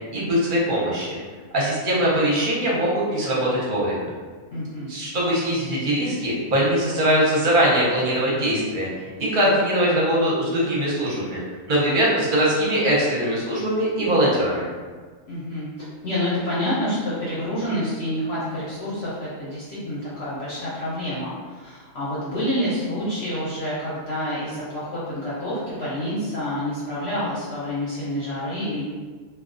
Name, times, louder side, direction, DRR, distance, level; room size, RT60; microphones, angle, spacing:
voice 1, 0.1-1.2 1.5-4.1 4.9-8.9 9.2-11.4 11.7-14.6, equal, 45° right, -6 dB, 0.7 m, -21 dB
voice 2, 4.5-4.9 15.3-28.8, left 1 dB, 60° left, -9 dB, 0.8 m, -28 dB
2.3 x 2.3 x 2.4 m, 1.4 s
omnidirectional pair, 1.4 m